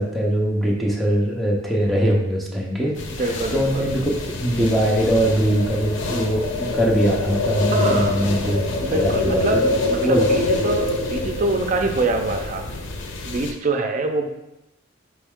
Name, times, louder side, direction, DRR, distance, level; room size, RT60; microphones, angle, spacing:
voice 1, 0.0-2.9 3.5-4.1 4.4-8.6 8.9-9.7 10.0-10.3, equal, ahead, -3 dB, 0.7 m, -21 dB
sound 1, 3.0-13.5, left 2 dB, 85° left, 0.5 m, -25 dB
voice 2, 3.2-3.9 7.7-8.1 8.8-12.6 13.3-14.3, right 3 dB, 45° right, 4 dB, 0.5 m, -24 dB
4.3 x 3.1 x 3.6 m, 0.91 s
head